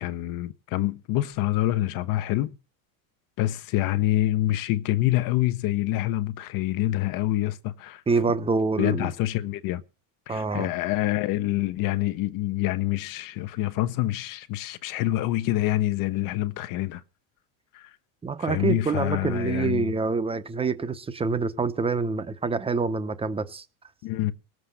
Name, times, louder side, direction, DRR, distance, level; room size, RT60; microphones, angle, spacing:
voice 1, 0.0-2.6 3.4-8.0 8.8-9.8 10.3-17.0 17.7-17.9 18.4-20.0 24.0-24.3, left 15 dB, 45° left, 1.1 m, -26 dB
voice 2, 8.1-9.1 10.3-10.7 18.2-23.6, right 4 dB, 10° right, 1.0 m, -26 dB
18.5 x 7.9 x 6.6 m
supercardioid pair, 155°, 46 cm